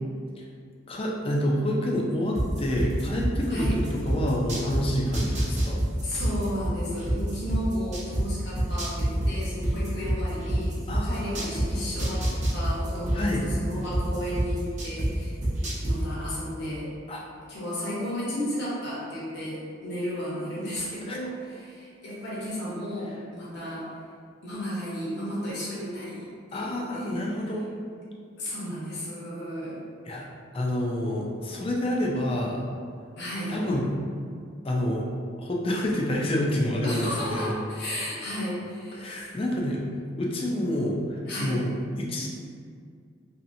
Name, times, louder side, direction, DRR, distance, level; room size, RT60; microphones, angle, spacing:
voice 1, 0.9-5.9 10.9-11.8 13.1-13.4 17.1-17.2 21.1-21.2 26.5-27.7 30.1-30.3 30.5-32.6 33.5-33.9 34.6-35.1 35.4-37.5 39.0-39.8 40.2-42.3, left 1 dB, 30° left, -2 dB, 0.4 m, -28 dB
sound 1, 2.3-4.8 5.1-8.2 8.6-11.7 12.0-15.1 15.4-15.9, right 1 dB, 40° right, 0.6 m, -26 dB
voice 2, 6.0-12.3 12.5-15.3 15.6-16.9 17.5-23.9 24.4-27.2 28.4-29.8 33.2-33.6 36.8-39.3 41.2-41.6, equal, 60° left, -7 dB, 1.0 m, -33 dB
2.9 x 2.8 x 2.6 m, 2.2 s
head